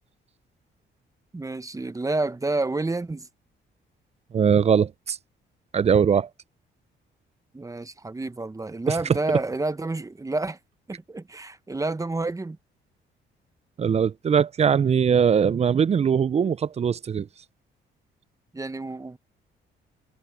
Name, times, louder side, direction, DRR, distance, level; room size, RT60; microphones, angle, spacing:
voice 1, 1.3-3.3 7.5-10.6 10.9-12.6 18.5-19.2, right 2 dB, 15° right, 1.1 m, -29 dB
voice 2, 4.3-5.2 5.7-6.3 13.8-17.3, right 7 dB, 35° right, 0.4 m, -21 dB
cardioid pair, 90°, 20 cm